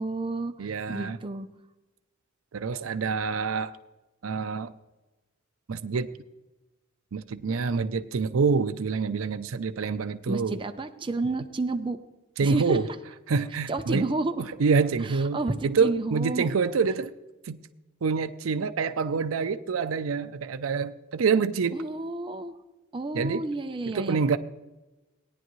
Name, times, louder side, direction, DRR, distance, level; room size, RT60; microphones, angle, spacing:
voice 1, 0.0-1.5 10.3-12.0 12.4-12.8 13.7-14.4 15.3-16.5 21.7-22.5 22.9-24.2, right 2 dB, 25° right, 6 dB, 0.6 m, -30 dB
voice 2, 0.6-1.2 2.5-3.7 4.2-4.7 5.7-6.1 7.1-10.6 12.4-12.9 13.3-14.1 14.6-17.1 17.5-17.6 18.0-21.8 23.1-23.5 23.9-24.4, right 5 dB, 80° right, 11 dB, 0.5 m, -26 dB
17.5 x 10.0 x 3.1 m, 1.1 s
head